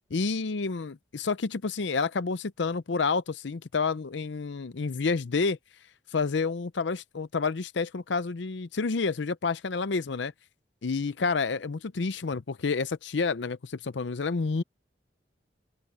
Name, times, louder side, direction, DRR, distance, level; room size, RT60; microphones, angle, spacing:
voice 1, 0.1-5.6 6.1-10.3 10.8-14.6, left 4 dB, 75° left, 0.6 m, -29 dB
open air
head